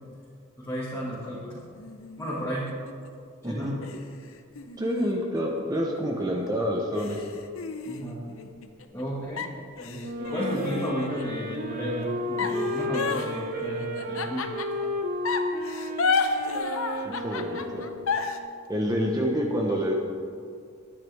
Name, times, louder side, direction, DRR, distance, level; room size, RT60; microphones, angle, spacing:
voice 1, 0.6-1.6 2.2-2.7 3.4-3.7 7.9-8.2 8.9-9.5 9.8-14.5, equal, 15° left, -8 dB, 1.9 m, -33 dB
sound 1, 1.8-3.1 3.8-6.0 6.5-6.6 7.0-9.0 9.4-11.4 12.4-14.9 15.2-18.4, left 4 dB, 65° left, 0.8 m, -32 dB
voice 2, 3.4-3.8 4.8-7.3 17.0-17.9 18.7-19.9, equal, 20° right, -1 dB, 1.1 m, -27 dB
Wind instrument woodwind instrument, 10.0-18.4, left 1 dB, 45° right, 1.2 m, -33 dB
21.0 x 9.4 x 3.5 m, 2.3 s
head